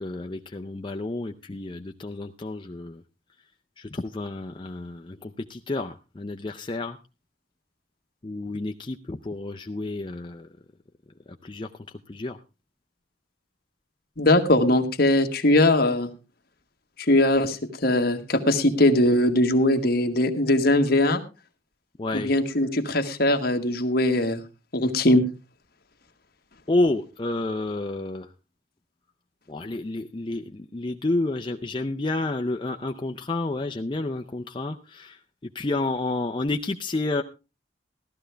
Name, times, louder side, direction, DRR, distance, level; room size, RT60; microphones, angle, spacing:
voice 1, 0.0-3.0 3.8-7.0 8.2-10.5 11.4-11.7 12.1-12.4 22.0-22.3 26.7-28.3 29.5-35.2 35.5-37.2, left 2 dB, 25° left, 4 dB, 0.6 m, -30 dB
voice 2, 14.2-16.1 17.0-21.2 22.1-24.4 24.7-25.2, left 1 dB, 55° left, 5 dB, 1.5 m, -21 dB
15.5 x 12.5 x 3.4 m, 0.29 s
head